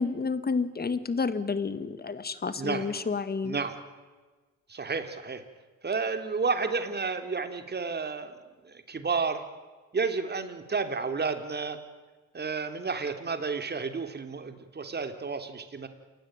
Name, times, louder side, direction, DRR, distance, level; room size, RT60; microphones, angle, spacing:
voice 1, 0.0-3.6, left 4 dB, 30° left, 13 dB, 2.1 m, -30 dB
voice 2, 2.5-2.9 3.4-3.8 4.7-5.4 5.8-8.3 8.6-9.4 9.9-11.8 12.3-15.9, right 4 dB, 35° right, 8 dB, 3.4 m, -31 dB
28.5 x 19.5 x 9.1 m, 1.3 s
cardioid pair, 90°, 30 cm